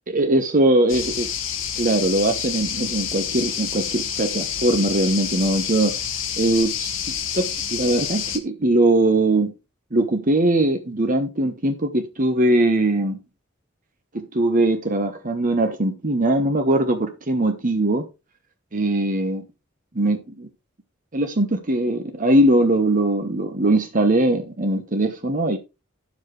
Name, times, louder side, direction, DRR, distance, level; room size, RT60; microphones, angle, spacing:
voice 1, 0.1-1.3 1.8-5.9 6.4-9.5 9.9-13.2 14.1-18.1 18.7-19.4 19.9-20.5 21.1-25.6, right 1 dB, 45° right, 1.1 m, -21 dB
sound 1, 0.9-8.4, left 8 dB, 80° left, 1.8 m, -28 dB
11.0 x 7.3 x 3.2 m
head